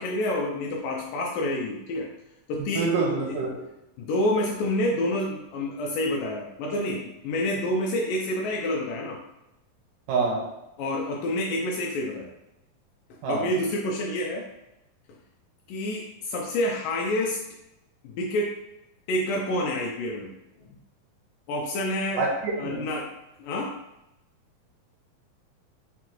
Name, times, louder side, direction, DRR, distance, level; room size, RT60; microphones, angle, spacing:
voice 1, 0.0-2.1 2.5-3.4 4.0-9.2 10.8-12.3 13.3-14.4 15.7-17.4 18.0-18.5 19.1-20.3 20.6-20.8 21.5-22.2 22.6-23.1 23.4-23.8, left 1 dB, 80° left, -1 dB, 2.0 m, -28 dB
voice 2, 2.8-3.5 10.1-10.4 13.2-13.5 22.2-22.3 22.6-22.8, right 4 dB, 85° right, -2 dB, 1.9 m, -25 dB
5.9 x 2.3 x 2.9 m, 0.90 s
omnidirectional pair, 4.2 m